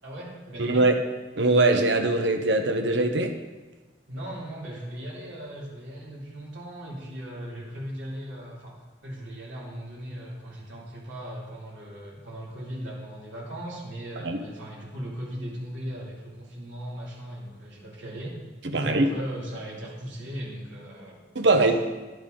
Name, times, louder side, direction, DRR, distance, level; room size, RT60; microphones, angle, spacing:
voice 1, 0.0-0.8 4.1-8.7 9.0-18.4 18.7-21.8, equal, 85° right, -5 dB, 2.9 m, -38 dB
voice 2, 0.6-0.9 1.4-3.3 14.2-14.4 18.7-19.1 21.3-21.8, right 2 dB, 70° right, 6 dB, 0.9 m, -21 dB
10.5 x 7.9 x 3.9 m, 1.2 s
head